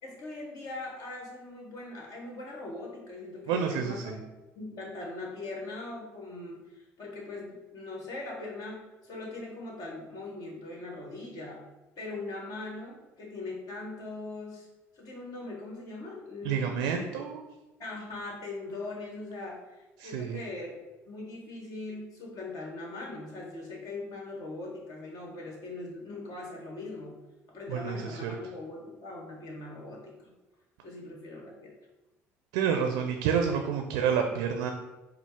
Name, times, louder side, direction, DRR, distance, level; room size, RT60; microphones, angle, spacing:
voice 1, 0.0-4.2 4.5-11.6 12.0-14.7 14.9-17.1 17.8-19.6 20.0-27.1 27.5-30.3 30.8-31.7, left 2 dB, 60° left, -1 dB, 1.3 m, -40 dB
voice 2, 3.5-4.2 16.4-17.4 20.0-20.4 27.7-28.3 32.5-34.7, right 7 dB, 80° right, 4 dB, 0.4 m, -29 dB
4.3 x 2.0 x 4.5 m, 1.0 s
hypercardioid pair, 70°, 7 cm